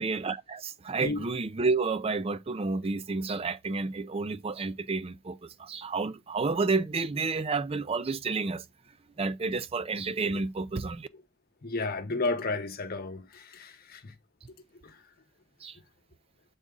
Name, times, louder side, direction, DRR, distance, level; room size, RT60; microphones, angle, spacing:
voice 1, 0.0-8.6 9.2-11.1 15.6-15.8, right 4 dB, 30° right, 0.5 m, -30 dB
voice 2, 11.6-14.1 14.8-15.0, left 3 dB, 45° left, 0.9 m, -33 dB
7.2 x 4.0 x 3.8 m
head